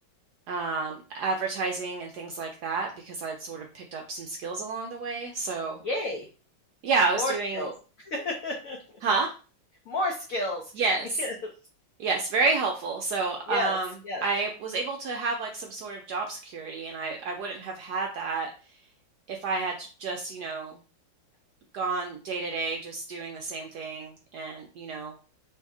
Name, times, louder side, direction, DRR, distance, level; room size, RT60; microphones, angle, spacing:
voice 1, 0.5-5.8 6.8-7.7 9.0-9.3 10.7-11.2 12.0-13.9 14.2-18.5 19.3-20.8 21.7-25.1, right 4 dB, 75° right, 2 dB, 0.9 m, -30 dB
voice 2, 5.8-6.3 7.2-7.7 8.0-8.8 9.9-10.7 11.2-11.5 13.5-13.7 14.0-14.2, left 1 dB, 90° left, 0 dB, 0.7 m, -30 dB
3.2 x 2.7 x 3.5 m, 0.35 s
omnidirectional pair, 2.2 m